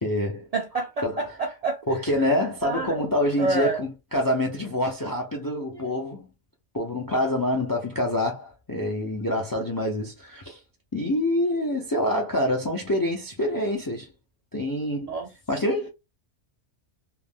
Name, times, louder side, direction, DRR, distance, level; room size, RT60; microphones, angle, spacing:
voice 1, 0.0-0.5 1.0-1.2 1.9-6.3 6.7-10.6 10.9-14.1 14.5-15.1 15.5-15.9, left 1 dB, 35° left, 0.3 m, -26 dB
voice 2, 0.5-1.8 2.3-3.1 3.4-3.8 5.7-6.0 15.0-15.3, right 3 dB, 55° right, 0.4 m, -29 dB
2.4 x 2.1 x 3.4 m
omnidirectional pair, 1.2 m